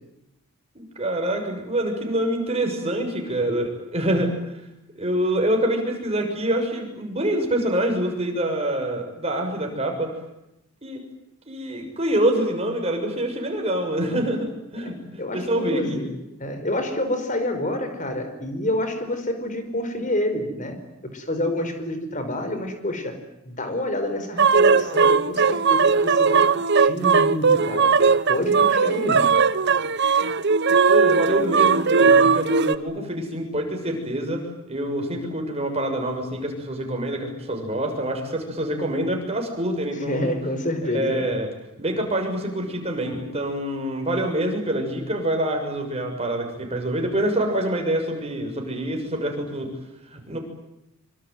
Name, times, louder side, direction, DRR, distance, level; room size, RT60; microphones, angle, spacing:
voice 1, 0.8-4.3 5.0-10.1 10.8-11.0 11.5-15.0 15.3-16.0 30.9-40.4 40.9-41.5 41.8-49.7 50.1-50.4, right 1 dB, 30° right, 3 dB, 6.8 m, -26 dB
voice 2, 14.8-20.8 21.1-23.1 23.4-26.4 26.7-27.9 28.3-29.2 40.0-41.3, left 1 dB, 35° left, 8 dB, 4.9 m, -28 dB
Choral Dissonance, 24.4-32.8, right 5 dB, 50° right, 1.0 m, -18 dB
25.0 x 25.0 x 9.4 m, 0.88 s
head